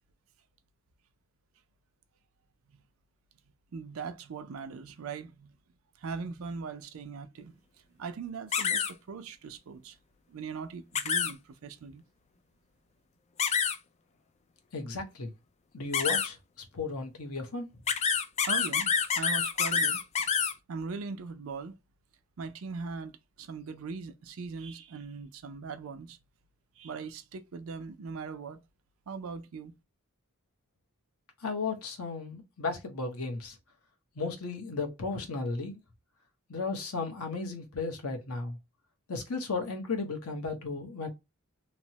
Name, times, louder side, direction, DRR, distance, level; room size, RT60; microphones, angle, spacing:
voice 1, 3.7-5.5 6.0-7.5 8.0-10.0 10.3-12.0 18.5-20.0 20.7-21.7 22.4-26.2 26.8-28.6 29.1-29.7, right 5 dB, 70° right, 0.4 m, -40 dB
sound 1, 8.5-8.9 10.9-11.3 13.4-13.8 15.9-16.3 17.9-20.5, left 6 dB, 30° left, 0.3 m, -27 dB
voice 2, 14.7-15.3 15.7-16.4 16.7-17.7 31.4-33.6 34.2-35.8 36.5-38.6 39.1-41.1, left 4 dB, 90° left, 0.9 m, -34 dB
3.1 x 2.0 x 2.7 m
head